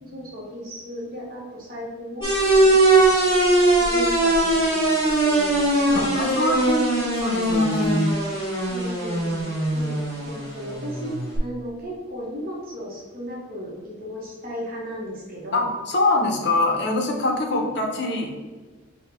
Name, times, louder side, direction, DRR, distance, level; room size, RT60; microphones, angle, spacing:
voice 1, 0.0-2.3 2.6-3.0 3.8-6.1 8.7-9.4 9.7-10.0 10.2-11.1 11.4-15.7 16.7-16.8 17.5-17.7, equal, 45° right, -3 dB, 1.0 m, -35 dB
sound 1, 2.2-11.4, right 2 dB, 15° right, 1.4 m, -21 dB
voice 2, 6.1-6.8 7.2-8.1 15.5-18.3, left 2 dB, 55° left, 2 dB, 0.6 m, -23 dB
5.4 x 2.2 x 3.3 m, 1.4 s
head